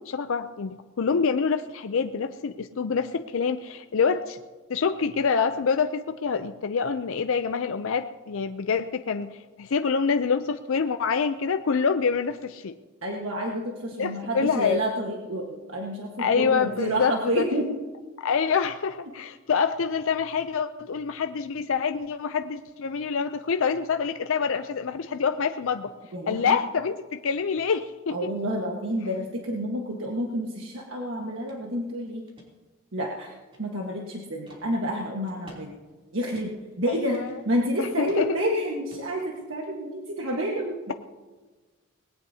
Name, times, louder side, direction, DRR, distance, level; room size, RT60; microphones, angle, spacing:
voice 1, 0.0-4.4 4.7-12.8 14.0-14.8 16.2-17.4 18.2-25.9 26.3-28.3 36.9-37.4 37.8-38.4, left 5 dB, 70° left, 8 dB, 0.5 m, -26 dB
voice 2, 13.0-17.7 26.1-26.6 28.1-32.3 32.9-35.7 36.1-40.9, equal, 70° right, -1 dB, 1.5 m, -29 dB
sound 1, 31.5-31.6 32.1-32.5 33.0-34.0 34.5-34.6 35.2-35.6 35.9-36.0 36.3-36.7 37.1-37.7 38.0-38.4 38.9-39.7, right 1 dB, 25° right, 3.2 m, -51 dB
20.0 x 17.0 x 2.8 m, 1.3 s
head